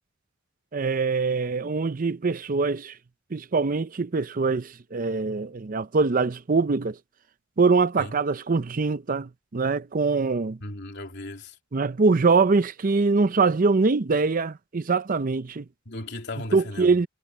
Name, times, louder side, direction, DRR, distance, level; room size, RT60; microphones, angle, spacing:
voice 1, 0.7-3.0 3.3-7.0 7.6-10.6 11.7-15.6 16.5-17.1, right 4 dB, 45° right, 0.6 m, -23 dB
voice 2, 10.6-11.6 15.8-16.9, left 2 dB, 60° left, 3.1 m, -36 dB
head